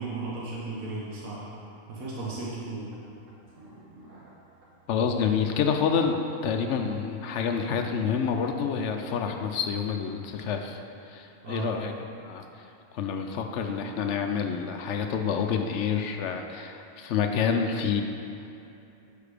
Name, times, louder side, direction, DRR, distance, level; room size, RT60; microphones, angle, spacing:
voice 1, 0.0-1.5 1.9-2.9 11.4-11.7, right 3 dB, 85° right, -6 dB, 1.6 m, -35 dB
sound 1, 2.9-8.2, right 1 dB, 65° right, 1.4 m, -52 dB
voice 2, 4.9-10.8 11.1-11.9 12.2-18.0, left 6 dB, 65° left, 5 dB, 0.8 m, -28 dB
6.7 x 5.2 x 4.9 m, 2.8 s
omnidirectional pair, 1.4 m